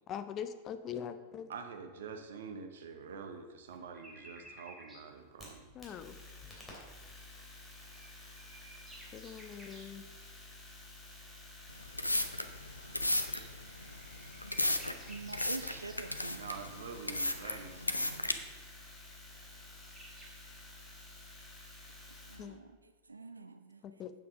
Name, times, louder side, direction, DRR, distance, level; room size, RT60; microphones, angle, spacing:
voice 1, 0.0-1.5 5.7-6.2 9.1-10.0 22.4-22.6 23.8-24.1, left 8 dB, 30° left, 11 dB, 0.6 m, -42 dB
voice 2, 1.5-5.6 16.4-18.1, right 5 dB, 60° right, 6 dB, 1.0 m, -46 dB
sound 1, 3.7-5.0 7.6-9.9 12.6-16.8 19.4-19.5 19.7-20.3, right 1 dB, 10° right, 2.0 m, -55 dB
sound 2, 5.1-22.4, left 2 dB, 5° left, 2.9 m, -52 dB
sound 3, 11.7-18.3, left 1 dB, 85° left, 0.6 m, -35 dB
voice 3, 15.1-16.5 22.3-22.7 23.1-23.8, right 3 dB, 80° right, 10 dB, 0.5 m, -45 dB
8.5 x 7.3 x 4.9 m, 1.4 s
figure-of-eight pair, 90°, 0 cm